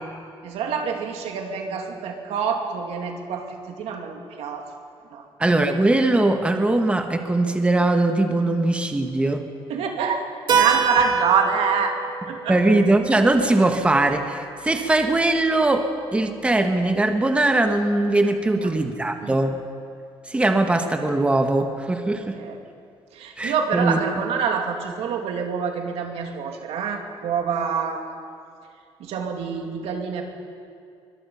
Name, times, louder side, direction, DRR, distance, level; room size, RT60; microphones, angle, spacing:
voice 1, 0.4-4.7 5.1-5.3 9.7-11.9 12.3-12.6 18.4-18.7 19.2-19.4 22.3-22.6 23.1-28.1 29.0-30.2, right 6 dB, 85° right, 3 dB, 2.6 m, -26 dB
voice 2, 5.4-9.5 12.5-19.6 20.3-22.4 23.4-24.0, right 2 dB, 10° right, 5 dB, 1.3 m, -21 dB
Keyboard (musical), 10.5-14.9, right 7 dB, 50° right, 2.2 m, -27 dB
23.5 x 21.5 x 5.7 m, 2.3 s
cardioid pair, 130°, 10 cm